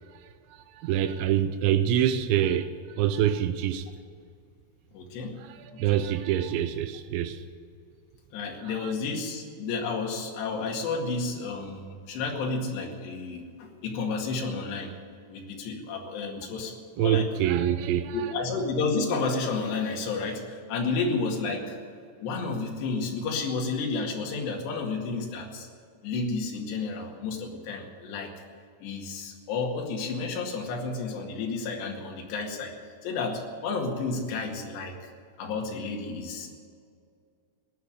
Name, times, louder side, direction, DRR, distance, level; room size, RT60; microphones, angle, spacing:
voice 1, 0.8-3.8 5.8-7.4 8.8-8.9 17.0-18.3, right 10 dB, 80° right, 2.8 m, -25 dB
voice 2, 4.9-5.4 5.7-6.0 8.3-14.9 15.3-17.3 18.1-21.8 22.2-25.7 26.0-28.3 28.8-35.1 35.4-36.5, left 4 dB, 65° left, 4.0 m, -31 dB
16.5 x 10.5 x 8.1 m
omnidirectional pair, 5.7 m